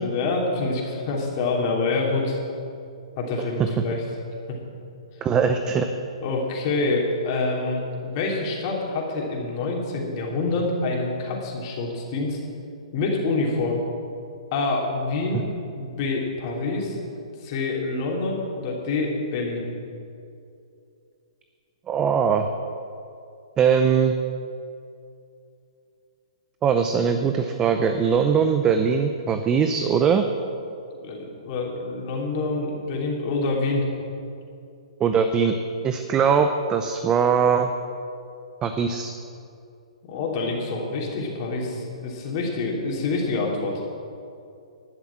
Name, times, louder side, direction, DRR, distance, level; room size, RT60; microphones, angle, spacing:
voice 1, 0.0-2.4 3.2-4.0 6.2-12.4 12.9-13.8 14.5-15.4 15.8-17.0 17.4-19.7 31.0-33.9 40.0-43.8, left 3 dB, 40° left, -1 dB, 3.2 m, -26 dB
voice 2, 5.2-5.9 15.3-15.4 21.9-22.5 23.6-24.1 26.6-30.3 35.0-35.6 35.8-37.7 38.6-39.1, right 6 dB, 20° right, 7 dB, 0.6 m, -21 dB
12.0 x 7.1 x 8.8 m, 2.6 s
hypercardioid pair, 135°, 3 cm